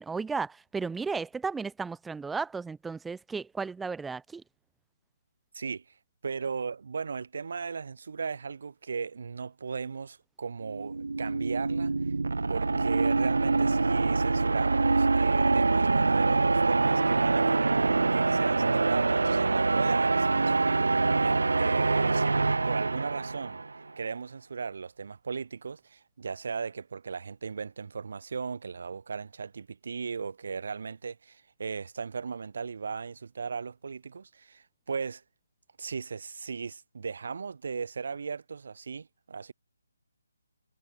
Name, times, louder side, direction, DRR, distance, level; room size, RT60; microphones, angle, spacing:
voice 1, 0.0-4.4, right 4 dB, 5° right, 0.4 m, -34 dB
voice 2, 5.5-5.9 6.2-12.1 12.5-17.8 18.1-22.4 22.6-23.6 24.0-35.2 35.8-39.5, right 5 dB, 60° right, 2.7 m, -37 dB
sound 1, 10.7-23.8, right 3 dB, 85° right, 0.4 m, -25 dB
hypercardioid pair, 155°, 0 cm